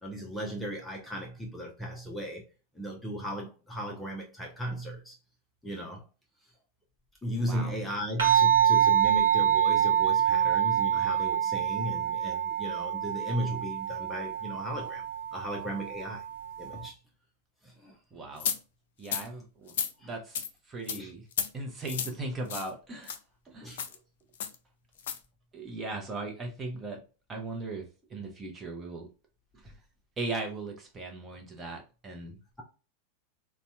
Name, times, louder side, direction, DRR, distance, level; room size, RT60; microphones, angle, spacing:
voice 1, 0.0-2.4 2.8-5.1 5.6-6.0 7.2-15.1 15.3-16.2 16.6-16.9 17.6-18.0 20.0-20.1 21.0-21.1 23.6-23.8, equal, 5° left, 0.7 m, -36 dB
sound 1, 8.2-16.9, right 9 dB, 65° right, 1.1 m, -26 dB
voice 2, 18.1-18.5 19.0-19.7 20.0-21.2 21.5-23.2 23.5-23.7 25.5-27.0 27.3-29.1 29.5-29.7 30.2-32.4, right 2 dB, 20° right, 0.9 m, -38 dB
sound 2, 18.4-18.6 19.0-19.3 19.7-19.9 20.3-20.5 20.9-21.0 21.3-21.5 21.8-22.1 22.5-22.7 23.0-23.2 23.7-23.9 24.4-24.5 25.0-25.2, left 8 dB, 55° left, 0.4 m, -32 dB
4.0 x 2.3 x 2.2 m
figure-of-eight pair, 90°, 0 cm